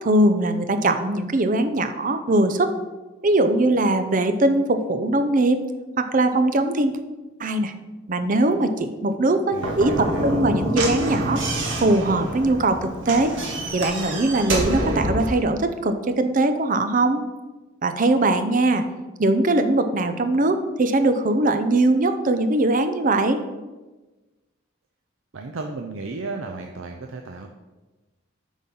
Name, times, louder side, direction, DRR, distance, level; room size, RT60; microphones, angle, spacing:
voice 1, 0.0-2.7 3.2-5.6 6.0-7.0 7.4-7.7 8.1-11.4 11.8-13.4 13.7-17.2 17.8-18.8 19.2-23.4, right 2 dB, 45° right, 9 dB, 0.6 m, -21 dB
Slam / Knock, 9.5-15.4, right 1 dB, 75° right, 1.6 m, -27 dB
voice 2, 9.5-10.4 25.3-27.5, right 3 dB, 90° right, 4 dB, 0.6 m, -33 dB
8.4 x 4.0 x 5.5 m, 1.2 s
head